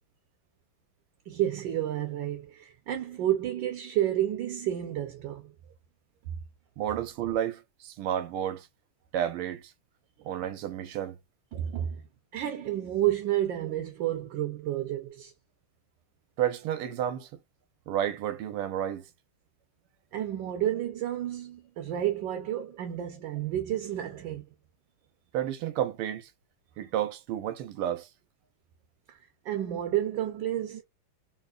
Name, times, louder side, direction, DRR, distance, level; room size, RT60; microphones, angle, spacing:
voice 1, 1.3-5.5 11.5-12.0 12.3-15.3 20.1-24.4 29.1-29.2 29.4-30.8, right 12 dB, 70° right, 1.3 m, -30 dB
voice 2, 6.8-8.7 9.1-9.7 10.2-11.2 16.4-17.3 17.9-19.1 25.3-26.3 26.8-28.1, right 11 dB, 90° right, 1.6 m, -31 dB
3.8 x 3.0 x 2.3 m
omnidirectional pair, 2.4 m